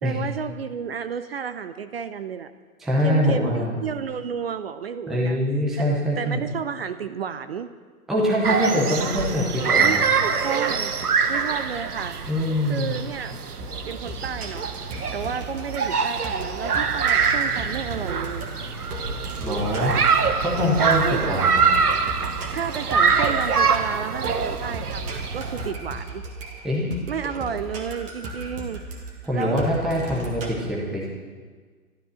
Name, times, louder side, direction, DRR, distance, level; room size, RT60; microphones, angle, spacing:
voice 1, 0.0-2.5 3.0-5.4 5.8-7.7 9.8-10.9 11.3-12.2 12.6-13.4 13.8-14.7 15.1-18.5 20.8-21.5 22.5-26.2 27.1-28.8 29.3-29.7, right 7 dB, 40° right, 11 dB, 0.7 m, -32 dB
voice 2, 2.8-3.7 5.1-6.5 8.1-10.1 12.3-13.0 19.4-20.0 20.4-21.8 26.6-26.9 29.2-31.0, equal, ahead, -4 dB, 0.5 m, -24 dB
sound 1, 8.4-25.7, right 5 dB, 80° right, 1.3 m, -24 dB
sound 2, 13.6-30.5, right 2 dB, 15° right, 1.5 m, -37 dB
13.0 x 12.5 x 6.3 m, 1.5 s
hypercardioid pair, 140°, 45 cm